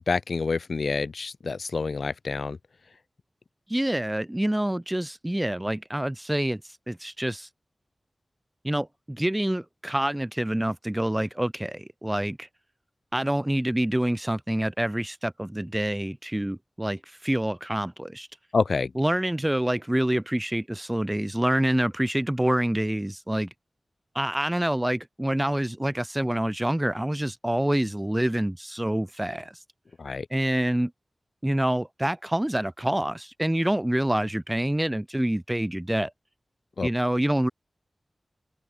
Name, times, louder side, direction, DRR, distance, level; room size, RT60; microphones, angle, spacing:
voice 1, 0.0-2.6 18.5-18.9 30.0-30.3 36.8-36.9, left 4 dB, 75° left, 2.0 m, -27 dB
voice 2, 3.7-6.6 6.9-7.5 8.6-12.5 13.1-18.3 19.0-23.5 24.1-29.5 30.3-30.9 31.4-36.1 36.8-37.5, right 1 dB, 15° right, 4.4 m, -26 dB
wide cardioid pair, 70°, 0 cm